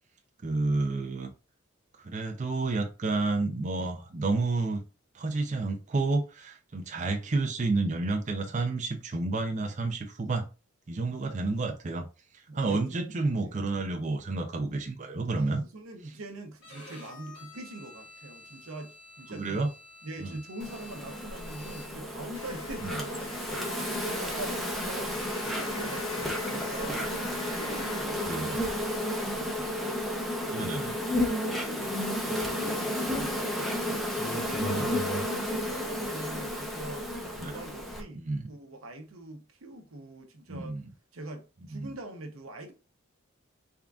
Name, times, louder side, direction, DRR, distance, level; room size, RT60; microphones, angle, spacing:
voice 1, 0.4-1.3 2.0-4.8 5.1-10.5 10.9-12.1 12.3-15.6 19.4-19.7 20.2-20.4 22.8-22.9 28.3-28.6 30.5-30.8 34.6-34.9 37.4-37.6 38.1-38.5 40.5-40.8 41.7-41.9, right 3 dB, 35° right, 0.5 m, -30 dB
voice 2, 12.5-13.6 15.4-19.6 20.0-23.3 23.7-29.8 30.3-30.7 30.9-34.9 35.3-37.1 37.4-40.8 41.1-42.7, right 1 dB, 85° right, 0.8 m, -43 dB
Bowed string instrument, 16.6-22.2, left 2 dB, 60° left, 1.4 m, -50 dB
Insect, 20.6-38.0, left 1 dB, ahead, 0.6 m, -32 dB
sound 1, 22.3-28.1, left 3 dB, 80° left, 1.1 m, -42 dB
3.6 x 3.6 x 2.3 m
head